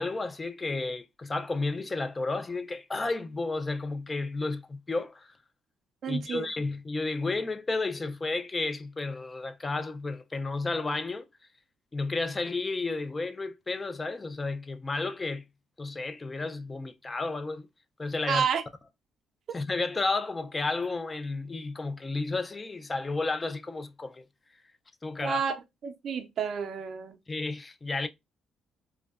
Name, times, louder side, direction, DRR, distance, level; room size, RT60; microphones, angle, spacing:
voice 1, 0.0-5.3 6.1-11.3 11.9-15.4 15.8-17.7 18.0-18.5 19.5-24.2 25.0-25.4 27.3-28.1, left 3 dB, 25° left, 0.3 m, -32 dB
voice 2, 6.0-6.5 18.3-18.6 19.5-19.6 25.2-25.5 25.8-27.2, right 7 dB, 55° right, 0.4 m, -30 dB
2.5 x 2.2 x 2.3 m
cardioid pair, 100°, 0 cm